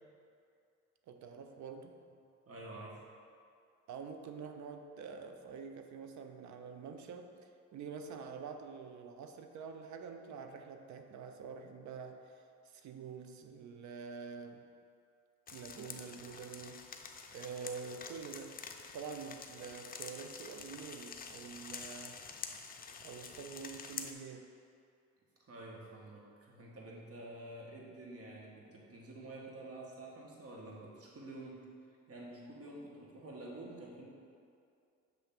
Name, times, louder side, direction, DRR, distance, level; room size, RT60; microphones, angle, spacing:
voice 1, 1.1-2.0 3.9-14.7 15.5-16.9 17.3-18.6 18.9-22.2 23.0-24.5, right 5 dB, 70° right, 6 dB, 0.6 m, -47 dB
voice 2, 2.5-3.0 25.4-31.7 32.1-34.1, right 2 dB, 50° right, -3 dB, 1.5 m, -49 dB
sound 1, 15.5-24.1, left 5 dB, 30° left, 0.5 m, -48 dB
6.8 x 3.4 x 5.9 m, 2.4 s
cardioid pair, 90°, 30 cm